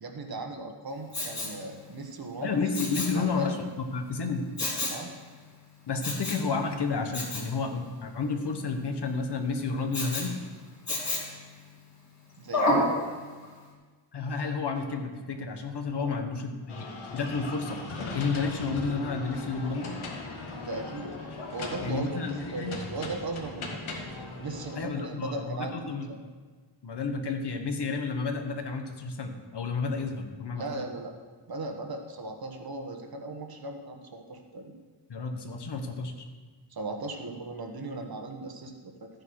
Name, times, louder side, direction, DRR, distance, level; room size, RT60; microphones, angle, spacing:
voice 1, 0.0-3.5 4.9-5.2 12.4-12.8 15.9-16.1 20.5-21.1 21.5-23.8 24.4-26.2 30.5-31.1 31.5-34.7 36.7-39.1, right 2 dB, 50° right, 4 dB, 1.4 m, -38 dB
Respiratory sounds, 1.1-1.6 2.7-3.2 4.6-5.0 6.0-6.5 7.1-7.5 9.9-10.3 10.9-11.4 12.5-12.9 13.4-13.5, left 1 dB, 35° left, 3.1 m, -28 dB
voice 2, 2.4-4.5 5.9-10.4 14.1-16.9 17.1-17.8 18.1-20.0 21.8-22.8 24.7-26.1 26.8-30.8 35.1-36.2, left 4 dB, 60° left, 5 dB, 1.3 m, -31 dB
sound 1, 16.7-24.8, left 3 dB, 85° left, 2.0 m, -39 dB
13.5 x 9.4 x 4.8 m, 1.4 s
wide cardioid pair, 170°, 47 cm